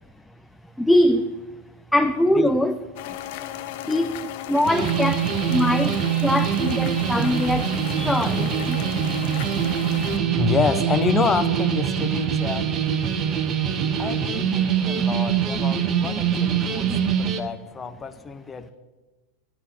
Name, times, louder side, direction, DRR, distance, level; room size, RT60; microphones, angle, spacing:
voice 1, 0.8-1.4 1.9-2.8 3.9-8.8 9.9-10.6, left 1 dB, 5° left, 9 dB, 0.4 m, -23 dB
sound 1, 3.0-10.2, left 12 dB, 60° left, 0.7 m, -35 dB
sound 2, 4.7-17.4, right 8 dB, 35° right, 0.9 m, -24 dB
voice 2, 10.4-12.7 14.0-18.7, left 5 dB, 20° left, 10 dB, 0.7 m, -28 dB
11.0 x 3.9 x 7.6 m, 1.2 s
hypercardioid pair, 100°, 0 cm